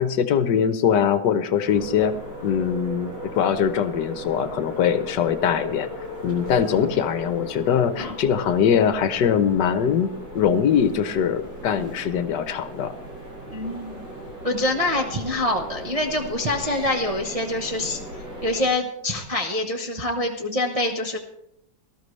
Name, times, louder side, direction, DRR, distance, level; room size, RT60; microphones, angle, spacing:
voice 1, 0.0-2.1 2.4-5.9 6.2-12.9, left 8 dB, 70° left, 11 dB, 1.3 m, -22 dB
sound 1, 1.6-18.7, equal, 80° right, 7.7 m, -37 dB
voice 2, 13.5-14.0 14.4-18.0 18.4-21.2, left 1 dB, 30° right, 1 dB, 0.6 m, -25 dB
18.5 x 13.0 x 3.2 m, 0.80 s
omnidirectional pair, 2.0 m